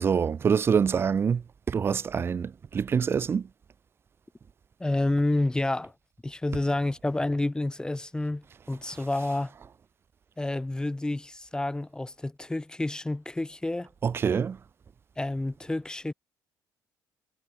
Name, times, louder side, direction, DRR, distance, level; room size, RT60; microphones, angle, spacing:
voice 1, 0.0-3.5 14.0-14.6, right 6 dB, 30° right, 0.3 m, -25 dB
voice 2, 4.8-5.9 6.2-9.5 10.4-13.9 15.2-16.1, left 2 dB, 10° left, 0.9 m, -29 dB
cardioid pair, 100°, 8 cm